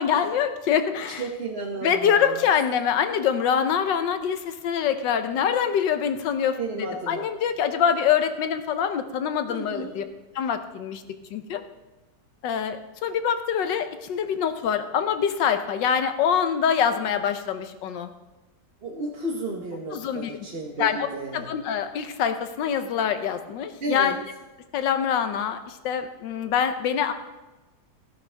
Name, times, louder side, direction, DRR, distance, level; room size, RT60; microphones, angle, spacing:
voice 1, 0.0-1.2 1.8-10.0 10.3-11.0 11.3-11.6 12.4-18.1 19.9-20.4 20.8-21.1 21.3-24.1 24.7-27.1, left 8 dB, 85° left, 9 dB, 1.5 m, -25 dB
voice 2, 1.1-2.5 6.6-7.3 9.5-9.9 18.8-21.5 23.8-24.2, right 2 dB, 40° right, -1 dB, 1.2 m, -33 dB
13.5 x 11.5 x 3.4 m, 1.1 s
omnidirectional pair, 1.9 m